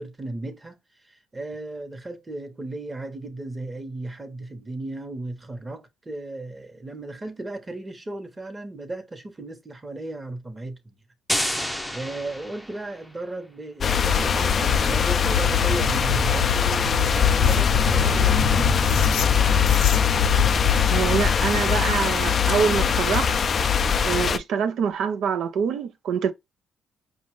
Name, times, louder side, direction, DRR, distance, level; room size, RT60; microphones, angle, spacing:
voice 1, 0.0-10.9 11.6-18.7, right 2 dB, 20° right, 1.1 m, -35 dB
sound 1, 11.3-13.1, equal, ahead, 0.7 m, -29 dB
sound 2, 13.8-24.4, left 7 dB, 45° left, 0.4 m, -21 dB
sound 3, 15.2-21.0, left 5 dB, 90° left, 0.6 m, -29 dB
voice 2, 20.9-23.3 24.0-26.3, right 7 dB, 75° right, 0.7 m, -25 dB
5.3 x 2.4 x 3.1 m
cardioid pair, 105°, 0 cm